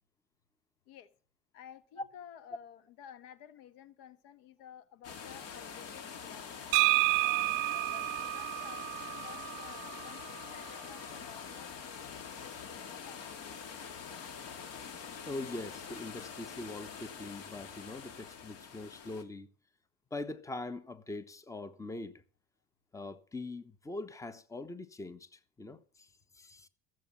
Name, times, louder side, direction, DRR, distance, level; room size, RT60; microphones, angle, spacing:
voice 1, 1.5-6.6 7.2-13.6, left 9 dB, 75° left, 1.3 m, -53 dB
sound 1, 5.0-19.2, left 6 dB, 55° left, 2.3 m, -45 dB
sound 2, 6.7-10.5, right 28 dB, 75° right, 0.5 m, -30 dB
voice 2, 15.3-19.5 20.1-22.2 22.9-26.1 26.3-26.7, left 2 dB, 10° left, 1.0 m, -42 dB
14.5 x 7.6 x 7.0 m
supercardioid pair, 100°, 29 cm